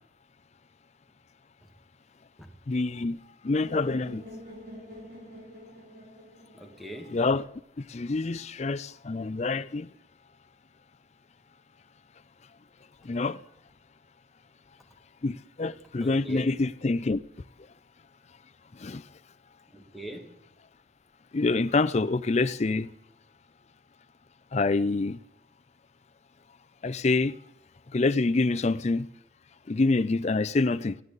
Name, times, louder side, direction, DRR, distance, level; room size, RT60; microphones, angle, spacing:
voice 1, 2.7-4.2 7.1-7.4 7.8-9.9 13.0-13.4 15.2-17.2 18.7-19.0 21.3-22.9 24.5-25.2 26.8-27.4 27.9-29.1 29.7-31.0, left 3 dB, 35° left, 0.4 m, -26 dB
sound 1, 3.6-7.6, equal, 55° right, 6.9 m, -46 dB
voice 2, 6.5-7.2 16.0-16.5 19.7-20.4, right 1 dB, ahead, 1.4 m, -41 dB
17.0 x 14.5 x 4.0 m
head